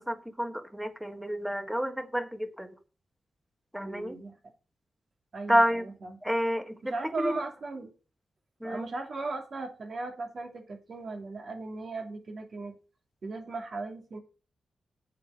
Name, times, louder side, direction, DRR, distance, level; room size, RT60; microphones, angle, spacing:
voice 1, 0.0-2.7 3.7-4.2 5.5-5.8 6.2-7.4 8.6-8.8, equal, 5° right, 1.5 m, -29 dB
voice 2, 3.8-4.3 5.3-6.2 6.9-7.9 8.6-12.8 13.2-14.2, right 3 dB, 50° right, 2.7 m, -37 dB
8.2 x 6.7 x 5.2 m
cardioid pair, 95°, 0 cm